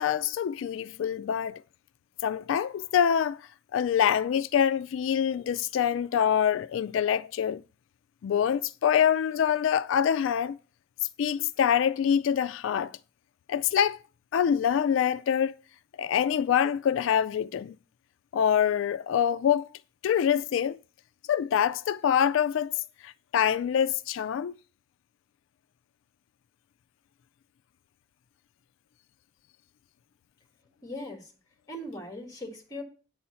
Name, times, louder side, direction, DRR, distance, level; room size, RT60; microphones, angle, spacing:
voice 1, 0.0-1.6 2.2-7.6 8.2-10.6 11.2-12.9 13.5-14.0 14.3-15.5 16.0-17.8 18.3-19.7 20.0-20.8 21.3-24.5, left 8 dB, 85° left, 0.3 m, -25 dB
voice 2, 30.8-31.3 31.7-32.8, left 1 dB, 20° left, 1.7 m, -39 dB
9.3 x 4.3 x 6.9 m
head